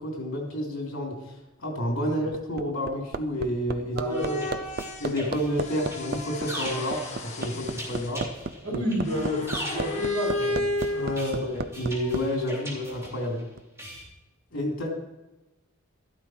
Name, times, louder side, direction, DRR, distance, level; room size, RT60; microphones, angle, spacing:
voice 1, 0.0-4.2 5.0-8.3 8.7-8.8 10.9-13.4 14.5-14.9, equal, 65° left, 0 dB, 3.5 m, -30 dB
Hammer, 2.3-12.2 13.6-13.7, right 3 dB, 45° right, 0.5 m, -33 dB
voice 2, 3.9-4.6 8.6-10.7 11.2-11.4, equal, 70° right, -6 dB, 5.3 m, -30 dB
sound 1, 4.0-5.2 5.6-8.1 9.1-11.7, left 2 dB, 30° left, 1.5 m, -33 dB
sound 2, 4.1-13.4 13.8-14.0, equal, 15° right, 3.7 m, -40 dB
13.5 x 12.0 x 4.6 m, 1.0 s
head